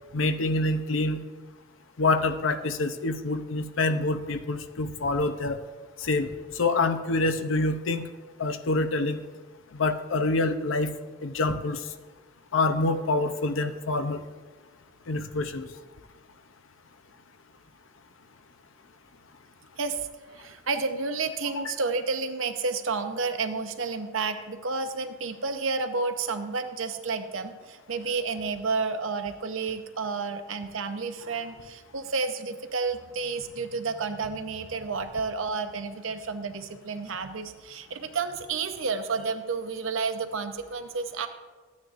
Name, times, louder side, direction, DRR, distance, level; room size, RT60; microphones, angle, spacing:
voice 1, 0.1-1.2 2.0-5.6 6.0-6.3 6.6-8.1 8.4-9.2 9.7-10.9 11.2-11.8 12.5-14.2 15.1-15.7 21.6-21.7, left 2 dB, 70° left, 9 dB, 0.6 m, -26 dB
voice 2, 19.8-20.1 20.3-41.3, right 4 dB, 75° right, 8 dB, 0.8 m, -31 dB
14.5 x 9.5 x 2.5 m, 1.4 s
head